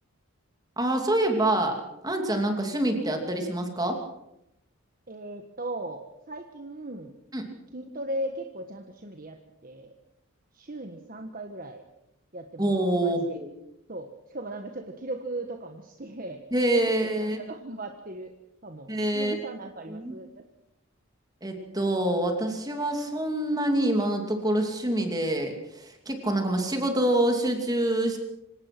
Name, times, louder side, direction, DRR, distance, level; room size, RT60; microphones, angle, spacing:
voice 1, 0.8-4.0 7.3-7.5 12.6-13.5 16.5-17.4 18.9-19.3 19.9-20.1 21.4-28.2, right 1 dB, 15° right, 4 dB, 2.7 m, -26 dB
voice 2, 5.1-7.1 7.7-9.4 9.6-9.9 10.5-11.8 12.3-12.7 13.0-13.3 13.9-16.4 17.2-18.3 18.6-20.4, right 1 dB, 40° right, 4 dB, 1.5 m, -37 dB
26.0 x 18.0 x 6.1 m, 0.84 s
head